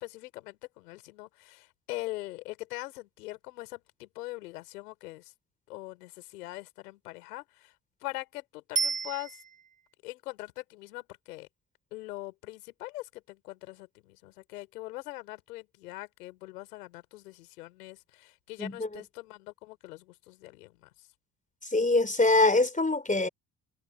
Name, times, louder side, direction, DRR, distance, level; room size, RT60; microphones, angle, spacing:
voice 1, 0.0-5.3 5.7-7.7 8.0-9.4 10.0-11.5 11.9-20.9, left 19 dB, 85° left, 5.1 m, -42 dB
Bicycle bell, 8.8-9.9 18.9-19.0, right 5 dB, 20° right, 0.7 m, -32 dB
voice 2, 18.6-19.0 21.6-23.3, left 2 dB, 15° left, 4.0 m, -24 dB
hypercardioid pair, 50°, 45 cm